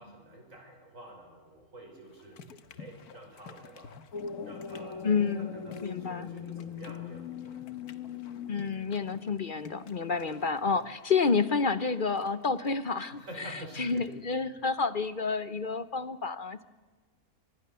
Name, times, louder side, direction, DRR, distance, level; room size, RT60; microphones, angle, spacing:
voice 1, 0.0-2.4 2.8-3.9 4.4-7.9 10.2-10.3 13.1-14.1, right 1 dB, 60° right, 2 dB, 6.1 m, -49 dB
sound 1, 2.0-14.2, left 6 dB, 90° left, 1.7 m, -53 dB
sound 2, 4.1-10.7, left 6 dB, 65° left, 1.6 m, -42 dB
voice 2, 5.0-5.5 5.8-6.3 8.5-16.6, left 5 dB, 45° left, 15 dB, 0.8 m, -29 dB
24.5 x 21.0 x 6.8 m, 1.4 s
omnidirectional pair, 1.6 m